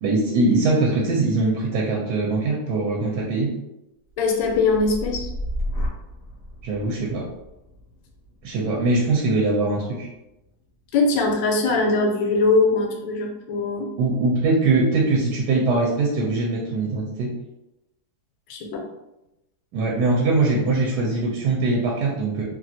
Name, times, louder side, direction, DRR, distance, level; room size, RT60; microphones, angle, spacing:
voice 1, 0.0-3.5 6.6-7.3 8.4-10.1 14.0-17.3 19.7-22.4, right 3 dB, 75° right, -3 dB, 1.2 m, -22 dB
sound 1, 4.1-12.2 12.6-13.1, equal, 65° left, 0.9 m, -35 dB
voice 2, 4.2-5.3 10.9-13.9 18.5-18.9, left 3 dB, 80° left, 1 dB, 1.3 m, -21 dB
3.0 x 2.4 x 2.6 m, 0.92 s
omnidirectional pair, 1.9 m